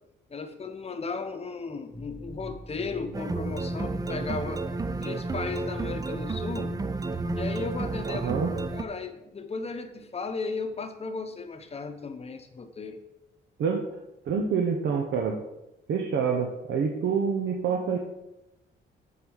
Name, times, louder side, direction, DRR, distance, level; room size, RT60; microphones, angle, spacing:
voice 1, 0.3-4.7 5.0-6.8 7.3-8.3 8.7-13.0, left 4 dB, 30° left, 8 dB, 0.9 m, -35 dB
sound 1, 1.9-8.9, equal, 45° right, 2.3 m, -43 dB
sound 2, 3.1-8.8, right 3 dB, 20° right, 0.5 m, -32 dB
voice 2, 8.0-8.5 13.6-13.8 14.3-15.4 15.9-18.0, right 6 dB, 70° right, 1 dB, 0.9 m, -27 dB
7.6 x 4.1 x 5.5 m, 0.93 s
cardioid pair, 90°, 20 cm